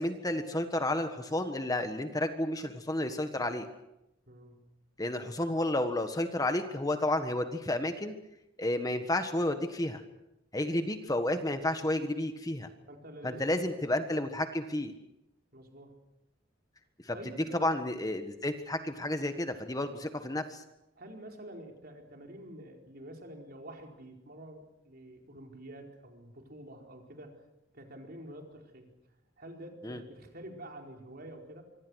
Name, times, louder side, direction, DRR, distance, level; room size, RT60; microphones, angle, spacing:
voice 1, 0.0-3.6 5.0-8.1 8.6-10.0 10.5-12.7 13.2-14.9 17.0-17.1 17.6-20.6 29.8-30.0, left 1 dB, 20° left, 8 dB, 1.5 m, -31 dB
voice 2, 4.3-4.6 12.9-13.8 15.5-16.0 17.1-17.8 19.0-19.1 21.0-27.4 27.7-28.9 29.4-31.6, right 1 dB, 50° right, 2 dB, 4.6 m, -48 dB
25.5 x 25.0 x 6.4 m, 0.87 s
head